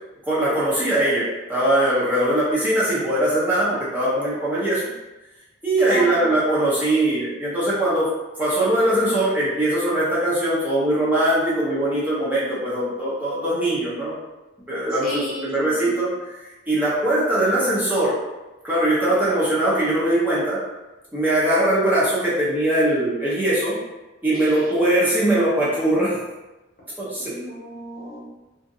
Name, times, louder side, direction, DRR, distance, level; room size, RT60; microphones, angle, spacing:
voice 1, 0.2-4.8 5.6-8.1 8.4-14.1 14.7-18.1 18.6-20.6 21.1-23.8 24.2-26.2 27.0-27.4, right 1 dB, 10° right, -9 dB, 0.6 m, -21 dB
voice 2, 5.8-6.3 15.0-15.5 15.8-16.0 24.3-25.0 27.2-28.2, left 1 dB, 45° left, -6 dB, 0.9 m, -33 dB
2.6 x 2.4 x 2.6 m, 1.1 s
head